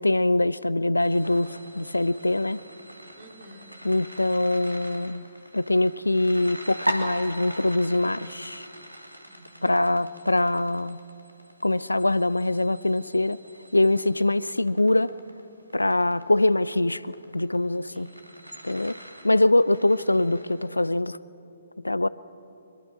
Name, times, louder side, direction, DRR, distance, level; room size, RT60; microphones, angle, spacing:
voice 1, 0.0-1.5 1.7-2.6 3.8-5.2 5.5-8.7 9.6-11.0 11.6-13.4 13.7-15.1 15.7-18.1 18.6-19.0 19.2-21.2 21.8-22.1, left 2 dB, 80° left, 18 dB, 0.6 m, -23 dB
sound 1, 1.0-20.7, equal, 90° right, 2.6 m, -40 dB
voice 2, 3.1-3.9 9.3-10.0 17.9-18.6, right 1 dB, 30° right, 0 dB, 4.1 m, -50 dB
24.0 x 22.5 x 6.1 m, 2.8 s
figure-of-eight pair, 130°, 0 cm